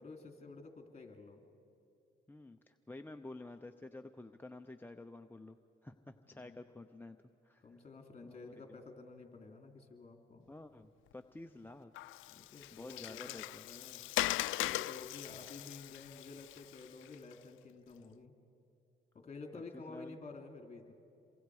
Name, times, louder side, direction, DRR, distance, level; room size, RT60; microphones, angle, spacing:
voice 1, 0.0-1.4 6.2-6.6 7.6-10.4 12.3-14.0 14.6-18.3 19.1-20.9, left 3 dB, 35° left, 3 dB, 3.0 m, -51 dB
voice 2, 2.3-5.6 5.8-7.2 7.4-7.6 8.2-8.5 10.5-11.9 12.7-13.6 19.5-19.6 19.9-20.1, left 2 dB, 10° left, 5 dB, 0.7 m, -50 dB
Water, 11.9-17.3, left 17 dB, 85° left, 0.4 m, -39 dB
27.5 x 23.0 x 4.9 m, 2.7 s
cardioid pair, 90°, 20 cm